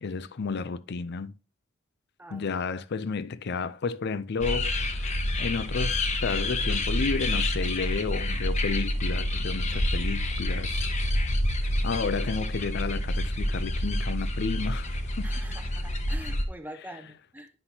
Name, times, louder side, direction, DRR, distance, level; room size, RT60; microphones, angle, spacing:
voice 1, 0.0-1.3 2.3-10.9 11.8-15.3 16.7-17.1, left 4 dB, 55° left, 0.5 m, -32 dB
sound 1, 4.4-16.4, left 1 dB, 35° left, 0.9 m, -28 dB
voice 2, 15.2-17.5, right 1 dB, 10° right, 0.8 m, -44 dB
9.9 x 5.7 x 2.8 m
head